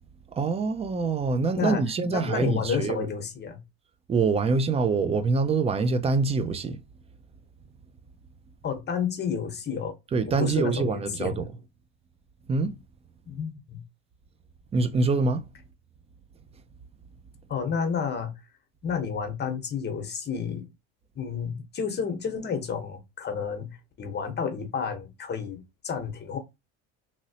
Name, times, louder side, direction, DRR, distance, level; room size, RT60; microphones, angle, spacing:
voice 1, 0.3-3.1 4.1-6.8 10.1-11.5 12.5-12.7 14.7-15.4, right 4 dB, 20° right, 0.4 m, -25 dB
voice 2, 1.5-3.6 8.6-10.0 10.4-11.5 13.3-13.8 17.5-18.3 18.8-20.7 21.1-26.4, left 6 dB, 30° left, 1.0 m, -31 dB
2.9 x 2.8 x 2.8 m
supercardioid pair, 105°, 33 cm